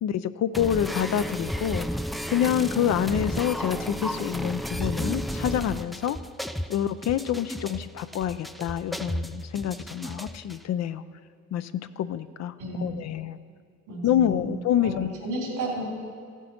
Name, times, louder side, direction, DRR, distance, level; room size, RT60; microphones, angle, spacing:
voice 1, 0.0-1.9 2.3-6.2 6.7-11.0 11.5-11.7 12.0-12.5 12.8-13.4 14.0-15.1, left 10 dB, 60° left, 13 dB, 0.5 m, -27 dB
sound 1, 0.5-10.6, equal, ahead, 0.3 m, -33 dB
voice 2, 12.6-13.1 13.9-15.9, right 2 dB, 90° right, -3 dB, 2.9 m, -33 dB
14.5 x 8.1 x 4.3 m, 2.2 s
cardioid pair, 90°, 30 cm